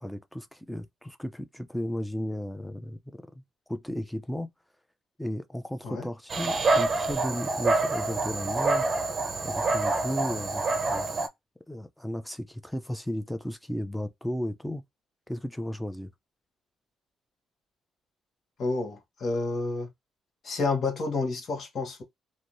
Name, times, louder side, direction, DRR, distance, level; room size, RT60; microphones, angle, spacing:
voice 1, 0.0-3.0 3.7-4.5 5.2-8.9 9.4-11.1 11.7-14.8 15.3-16.1, equal, 5° left, 0.6 m, -34 dB
Dog, 6.3-11.3, right 3 dB, 40° right, 0.6 m, -27 dB
voice 2, 18.6-19.9 20.4-22.0, left 3 dB, 55° left, 1.4 m, -29 dB
3.0 x 2.6 x 2.7 m
cardioid pair, 90°, 0 cm